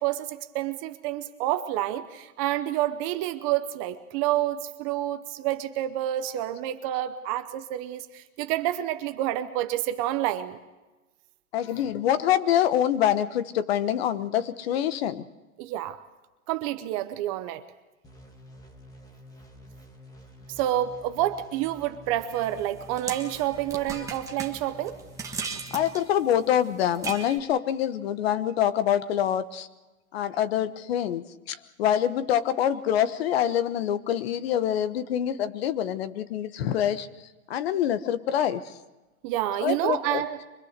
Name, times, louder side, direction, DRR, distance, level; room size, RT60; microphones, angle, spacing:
voice 1, 0.0-10.6 15.6-16.0 16.5-17.6 20.6-25.0 39.2-40.4, right 13 dB, 25° right, 10 dB, 0.7 m, -28 dB
voice 2, 11.5-15.2 23.9-24.1 25.7-29.7 30.1-37.1 37.5-38.7 39.6-40.2, left 10 dB, 45° left, 13 dB, 1.2 m, -25 dB
sound 1, 18.0-25.8, equal, 10° left, 1.7 m, -49 dB
sound 2, 22.3-27.4, right 5 dB, 5° right, 1.4 m, -38 dB
24.5 x 20.5 x 6.7 m, 1.1 s
hypercardioid pair, 150°, 43 cm